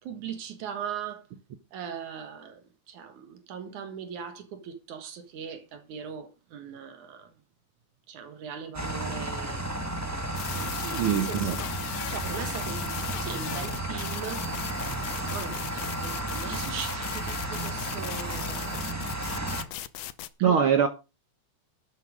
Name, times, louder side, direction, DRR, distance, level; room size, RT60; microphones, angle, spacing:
voice 1, 0.0-1.3 1.7-7.3 8.1-9.7 10.5-11.7 12.1-14.5 15.1-18.9 20.4-20.7, right 7 dB, 80° right, 3.0 m, -40 dB
sound 1, 8.7-19.6, right 1 dB, 10° right, 0.9 m, -33 dB
sound 2, 10.4-20.3, left 13 dB, 70° left, 1.8 m, -39 dB
voice 2, 11.0-11.6 20.4-20.9, right 8 dB, 60° right, 1.5 m, -22 dB
11.5 x 9.2 x 5.0 m
omnidirectional pair, 3.4 m